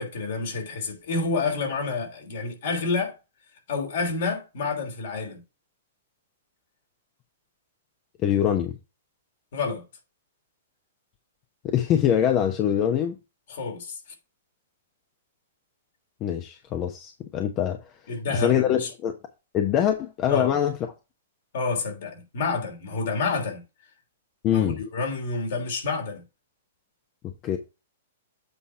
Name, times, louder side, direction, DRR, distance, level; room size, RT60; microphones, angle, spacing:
voice 1, 0.0-3.2 3.7-5.4 9.5-9.8 13.5-14.0 18.1-18.9 20.3-20.6 21.5-23.6 24.5-26.2, left 4 dB, 65° left, 3.2 m, -29 dB
voice 2, 8.2-8.8 11.6-13.2 16.2-17.8 18.3-19.1 19.5-20.8 24.4-24.8 27.2-27.6, left 10 dB, 35° left, 1.0 m, -24 dB
8.2 x 4.1 x 4.7 m
hypercardioid pair, 115°, 0 cm